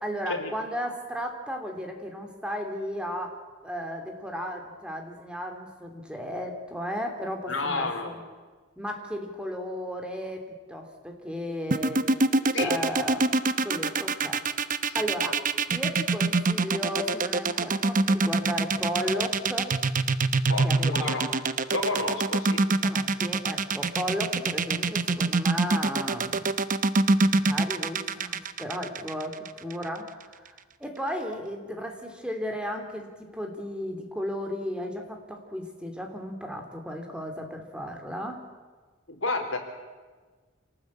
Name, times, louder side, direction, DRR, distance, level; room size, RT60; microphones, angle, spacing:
voice 1, 0.0-3.3 3.6-8.2 8.8-12.0 12.6-13.2 13.6-14.4 14.9-15.4 15.7-19.8 20.6-21.4 22.8-26.5 27.2-38.5, equal, 5° right, 4 dB, 3.0 m, -34 dB
voice 2, 7.5-8.1 12.5-12.7 14.9-15.0 20.5-21.2 21.7-22.6 39.1-39.6, left 3 dB, 70° left, 4 dB, 3.9 m, -30 dB
sound 1, 11.7-29.8, right 3 dB, 40° right, 0.9 m, -24 dB
27.0 x 19.0 x 8.6 m, 1.4 s
head